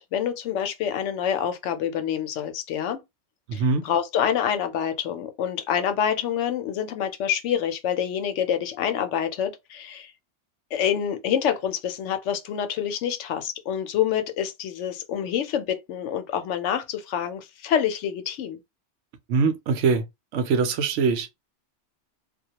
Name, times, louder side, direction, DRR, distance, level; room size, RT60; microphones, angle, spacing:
voice 1, 0.0-3.0 3.5-10.1 10.7-18.6, left 9 dB, 80° left, 0.9 m, -27 dB
voice 2, 3.5-3.8 19.3-20.0 20.3-21.3, right 5 dB, 80° right, 0.9 m, -23 dB
2.2 x 2.2 x 2.8 m
omnidirectional pair, 1.2 m